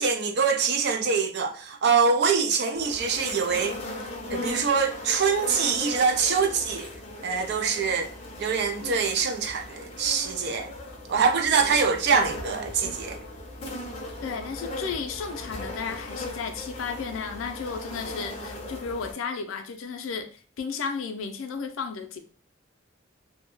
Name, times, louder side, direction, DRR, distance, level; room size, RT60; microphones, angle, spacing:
voice 1, 0.0-3.8 4.3-6.9 7.2-8.1 8.4-10.7 11.1-13.2, right 5 dB, 55° right, 0.4 m, -24 dB
sound 1, 2.7-19.1, left 1 dB, 30° left, 0.5 m, -38 dB
voice 2, 14.2-22.2, left 5 dB, 85° left, 0.4 m, -33 dB
2.2 x 2.1 x 3.0 m
head